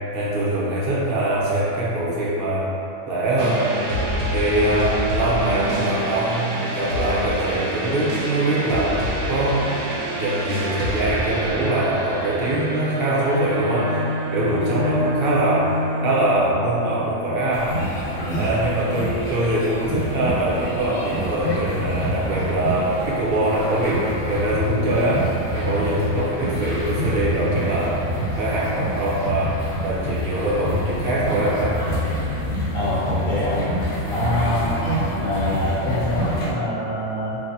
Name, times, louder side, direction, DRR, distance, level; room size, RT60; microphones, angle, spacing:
voice 1, 0.1-2.7 3.1-3.7 4.3-9.8 10.2-14.0 14.3-15.7 16.0-17.8 18.3-28.0 28.4-31.8, right 1 dB, 50° right, -7 dB, 0.8 m, -23 dB
sound 1, 3.4-18.1, equal, 90° right, 1.2 m, -27 dB
sound 2, 17.5-36.5, equal, 80° left, 1.3 m, -27 dB
voice 2, 18.2-18.6 32.7-33.7 34.1-37.4, equal, 50° left, -12 dB, 1.5 m, -25 dB
4.4 x 2.6 x 2.7 m, 2.9 s
omnidirectional pair, 1.5 m